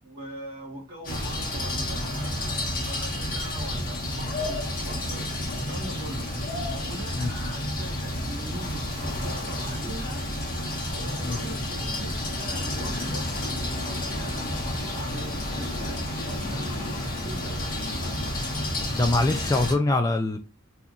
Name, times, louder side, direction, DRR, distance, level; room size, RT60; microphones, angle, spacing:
voice 1, 0.0-5.2 5.7-6.3 6.7-10.3 10.9-13.3 13.8-16.6 17.2-17.6, right 1 dB, 45° right, 1.3 m, -42 dB
sound 1, 1.0-19.7, left 1 dB, 40° left, 1.2 m, -30 dB
voice 2, 18.9-20.4, left 2 dB, 15° left, 0.3 m, -23 dB
2.8 x 2.5 x 3.7 m
head